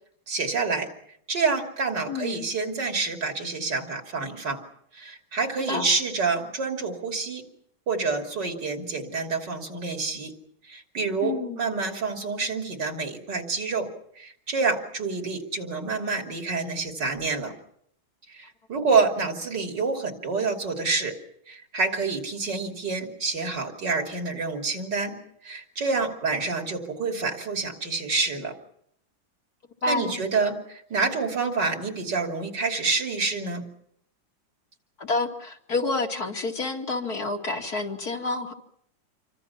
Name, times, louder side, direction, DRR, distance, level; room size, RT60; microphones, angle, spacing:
voice 1, 0.3-0.9 1.3-4.6 4.9-7.4 7.9-10.3 10.6-13.9 14.2-17.5 18.3-21.2 21.5-25.2 25.4-28.5 29.9-33.6, right 4 dB, 60° right, 3 dB, 3.6 m, -27 dB
voice 2, 2.1-2.5 5.7-5.9 11.2-11.6 29.8-30.2 35.0-38.5, left 3 dB, 50° left, 2 dB, 2.7 m, -29 dB
27.5 x 25.0 x 5.9 m, 0.70 s
omnidirectional pair, 2.1 m